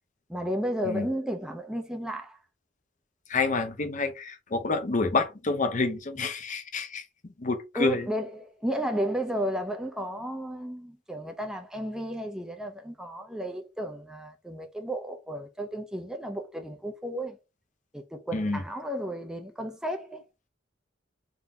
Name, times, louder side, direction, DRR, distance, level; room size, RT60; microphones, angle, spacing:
voice 1, 0.3-2.4 7.7-17.4 17.9-20.2, equal, 5° right, 0.5 m, -33 dB
voice 2, 3.3-7.0 7.4-8.1 18.3-18.6, left 3 dB, 40° left, 0.7 m, -28 dB
3.8 x 2.7 x 3.5 m
head